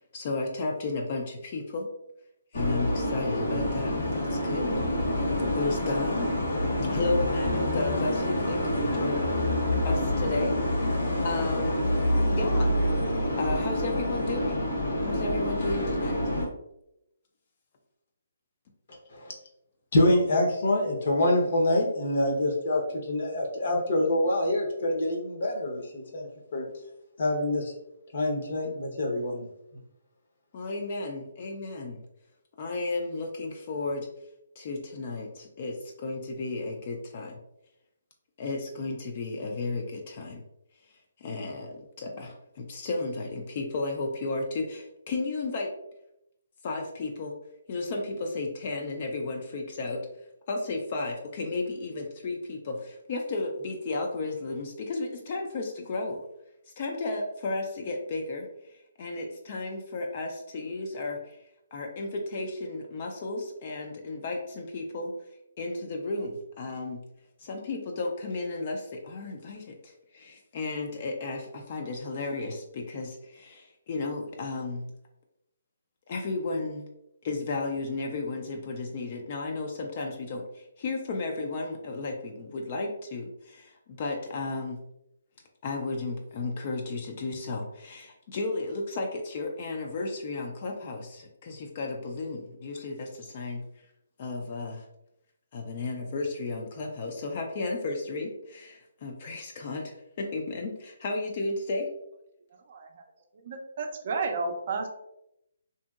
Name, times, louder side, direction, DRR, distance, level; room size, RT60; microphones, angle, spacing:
voice 1, 0.1-1.9 2.5-4.7 5.1-5.2 5.5-6.3 6.9-9.3 9.8-10.6 11.2-11.8 12.3-12.7 13.3-14.6 15.0-16.2 30.5-32.0 32.6-34.1 34.6-37.4 38.4-40.4 41.2-45.7 46.6-47.3 47.7-50.0 50.5-56.2 56.8-58.5 59.0-61.2 61.7-65.1 65.6-67.0 67.4-74.8 76.1-76.8 77.2-80.4 80.8-84.8 85.6-93.6 94.2-94.8 95.5-101.9, left 3 dB, 40° left, 2 dB, 0.4 m, -33 dB
sound 1, 2.5-16.4, left 1 dB, 70° left, 1.3 m, -27 dB
voice 2, 19.9-26.7 27.2-27.7 28.1-29.4, left 1 dB, 55° left, 0 dB, 0.8 m, -26 dB
voice 3, 102.7-103.0 103.4-104.9, right 4 dB, 45° right, 4 dB, 0.4 m, -32 dB
2.7 x 2.6 x 2.3 m, 0.83 s
hypercardioid pair, 160°, 0 cm